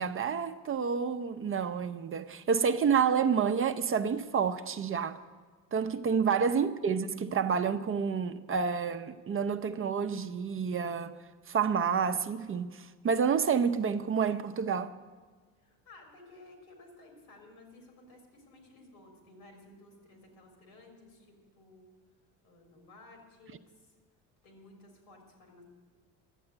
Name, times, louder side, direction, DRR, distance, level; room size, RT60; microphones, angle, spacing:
voice 1, 0.0-5.2 5.7-11.2 11.5-14.9, right 6 dB, 35° right, 0.6 m, -29 dB
voice 2, 15.6-21.9 22.4-24.0 24.4-25.6, left 2 dB, 85° left, 3.7 m, -55 dB
12.0 x 7.8 x 8.7 m
supercardioid pair, 80°, 39 cm